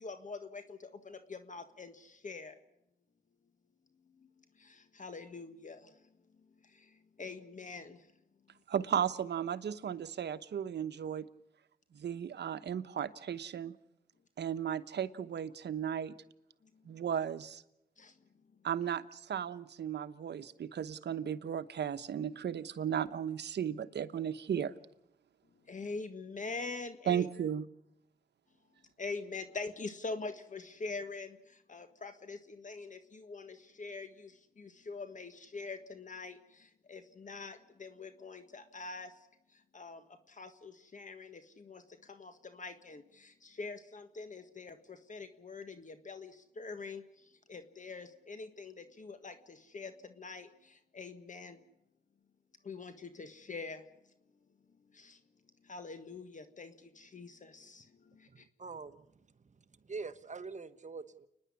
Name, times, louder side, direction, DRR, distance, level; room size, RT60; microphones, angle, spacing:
voice 1, 0.0-0.8 1.1-1.9 2.2-2.5 5.0-5.8 7.2-7.9 25.7-27.3 29.0-31.3 31.7-32.4 32.6-33.0 33.3-34.1 34.9-36.4 36.9-39.1 39.7-40.0 40.4-41.4 41.7-41.8 42.2-42.3 42.6-43.0 43.6-44.7 45.1-46.3 46.6-47.0 47.5-49.3 49.7-49.9 50.2-50.5 51.0-51.5 52.7-52.9 53.2-53.8 55.7-56.7 57.1-57.3, left 3 dB, 45° left, 9 dB, 1.6 m, -43 dB
voice 2, 8.7-11.3 11.9-13.7 14.4-16.1 16.8-17.6 18.6-24.7 27.1-27.6, right 8 dB, 75° right, 11 dB, 1.0 m, -35 dB
voice 3, 58.3-61.3, right 4 dB, 40° right, 11 dB, 1.2 m, -45 dB
29.5 x 10.5 x 9.7 m, 0.83 s
cardioid pair, 70°, 18 cm